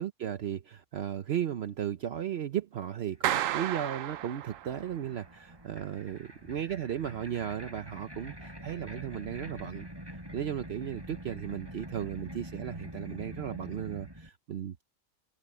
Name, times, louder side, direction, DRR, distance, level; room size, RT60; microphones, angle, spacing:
voice 1, 0.0-9.9 10.3-14.8, right 10 dB, 60° right, 0.9 m, -35 dB
sound 1, 3.2-3.3 3.4-14.3, equal, 20° right, 7.4 m, -45 dB
Clapping, 3.2-5.0, right 12 dB, 90° right, 1.0 m, -32 dB
open air
omnidirectional pair, 1.3 m